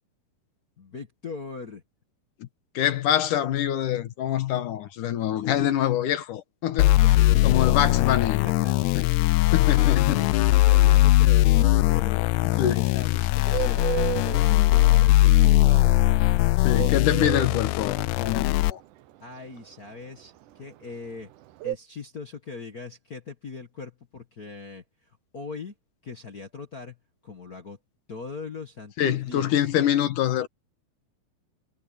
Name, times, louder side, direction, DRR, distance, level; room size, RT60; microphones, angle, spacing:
voice 1, 0.8-1.8 7.0-8.1 8.4-8.7 9.1-14.1 14.3-15.9 19.2-21.3 21.6-25.7 26.0-27.0 27.2-27.8 28.1-29.7, left 4 dB, 50° left, 1.1 m, -40 dB
voice 2, 2.7-6.9 7.4-8.5 9.0-9.1 9.5-10.3 12.6-12.9 16.6-18.8 29.0-30.5, left 11 dB, 70° left, 2.6 m, -25 dB
sound 1, 6.8-18.7, left 18 dB, 90° left, 1.7 m, -20 dB
Bird, 11.8-21.8, right 17 dB, 75° right, 2.3 m, -33 dB
omnidirectional pair, 3.9 m